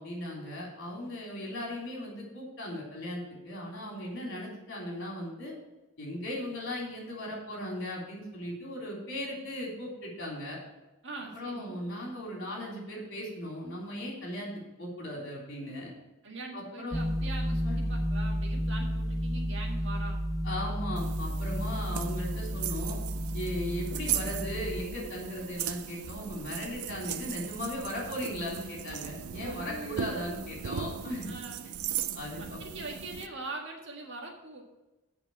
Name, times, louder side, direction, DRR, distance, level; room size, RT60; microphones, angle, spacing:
voice 1, 0.0-5.5 6.0-10.6 11.4-14.5 14.8-15.9 16.5-17.0 17.6-17.8 20.4-23.0 23.3-31.3 32.1-32.6, left 1 dB, 55° left, -3 dB, 3.6 m, -37 dB
voice 2, 11.0-11.8 16.2-20.2 29.4-30.4 31.3-31.7 32.4-34.6, right 3 dB, 55° right, 0 dB, 1.7 m, -42 dB
sound 1, 16.9-24.8, equal, ahead, 0.7 m, -32 dB
sound 2, 21.0-33.3, right 9 dB, 85° right, 0.5 m, -38 dB
8.1 x 5.6 x 7.1 m, 1.0 s
head